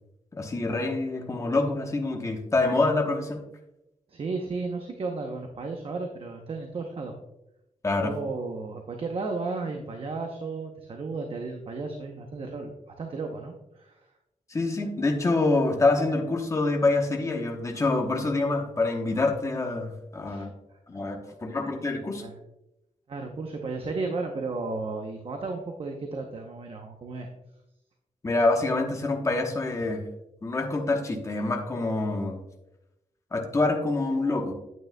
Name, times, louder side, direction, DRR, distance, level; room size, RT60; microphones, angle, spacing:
voice 1, 0.3-3.4 7.8-8.1 14.5-20.5 20.9-22.2 28.2-30.0 30.4-32.4 33.3-34.5, left 2 dB, 25° left, 2 dB, 1.0 m, -26 dB
voice 2, 4.1-7.2 8.0-14.1 20.2-20.8 22.2-22.3 23.1-27.3, right 3 dB, 45° right, 3 dB, 0.8 m, -34 dB
9.1 x 8.7 x 2.2 m, 0.90 s
wide cardioid pair, 165°, 13 cm